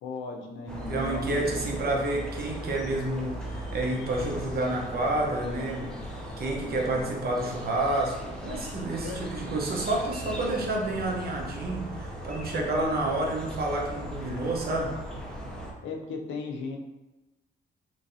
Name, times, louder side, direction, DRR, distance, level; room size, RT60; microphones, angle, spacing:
voice 1, 0.0-1.6 6.6-7.1 9.0-9.2 12.4-12.9 15.8-16.8, left 4 dB, 75° left, 2 dB, 0.6 m, -37 dB
sound 1, 0.7-15.7, equal, 5° left, 0.6 m, -38 dB
voice 2, 0.9-15.0, right 2 dB, 50° right, -1 dB, 0.8 m, -29 dB
3.0 x 2.6 x 2.7 m, 1.0 s
cardioid pair, 90°, 20 cm